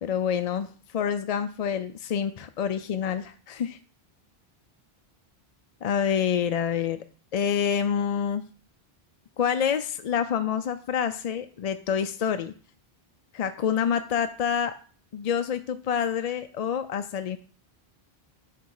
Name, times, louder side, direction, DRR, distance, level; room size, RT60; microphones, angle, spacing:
voice 1, 0.0-3.8 5.8-7.0 7.3-8.4 9.4-12.5 13.3-14.7 15.1-17.4, left 8 dB, 55° left, 9 dB, 0.4 m, -27 dB
8.2 x 3.4 x 4.8 m, 0.41 s
omnidirectional pair, 1.1 m